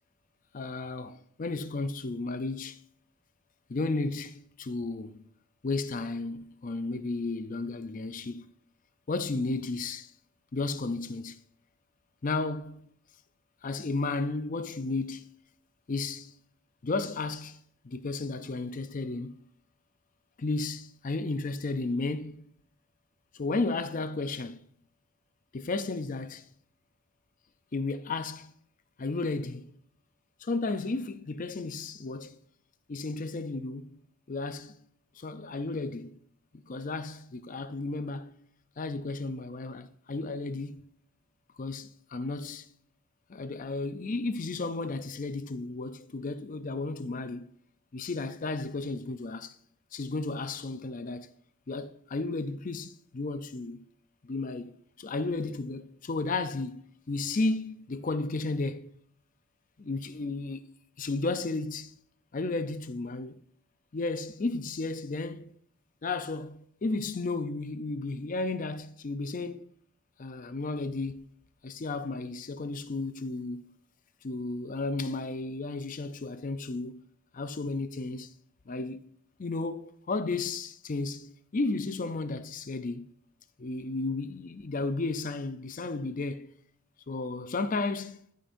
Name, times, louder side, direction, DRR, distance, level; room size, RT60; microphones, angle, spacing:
voice 1, 0.5-2.8 3.7-5.2 5.6-8.5 9.1-10.1 10.5-11.4 12.2-12.9 13.6-15.3 15.9-16.3 16.8-19.4 20.4-22.5 23.3-24.6 25.5-26.4 27.7-28.5 29.0-29.8 30.4-32.4 32.9-34.0 34.3-34.8 35.2-36.2 36.5-38.4 38.8-40.8 41.6-42.7 43.3-47.5 47.9-49.6 49.9-51.3 51.7-53.8 54.2-56.8 57.1-58.9 59.8-60.6 61.0-61.9 62.3-63.4 63.9-65.5 66.0-69.7 70.2-71.2 71.6-73.8 74.2-77.0 77.3-78.3 78.7-79.0 79.4-83.1 83.6-86.5 87.1-88.2, left 3 dB, 35° left, 0.5 m, -33 dB
13.0 x 5.2 x 2.6 m
head